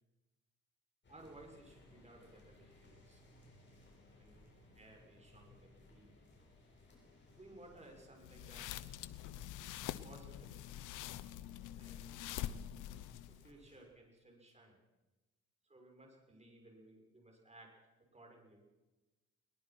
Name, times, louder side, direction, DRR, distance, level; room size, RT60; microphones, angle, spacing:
sound 1, 1.0-13.8, left 2 dB, 35° left, 7.6 m, -63 dB
voice 1, 1.1-3.2 4.2-4.5 4.8-6.1 7.4-8.9 10.0-10.7 11.7-12.3 13.3-14.8 15.6-17.7 18.0-18.8, right 2 dB, 20° right, 2 dB, 6.5 m, -59 dB
sound 2, 8.2-13.5, left 12 dB, 90° left, 0.9 m, -45 dB
22.0 x 20.0 x 6.1 m, 1.1 s
cardioid pair, 90°, 30 cm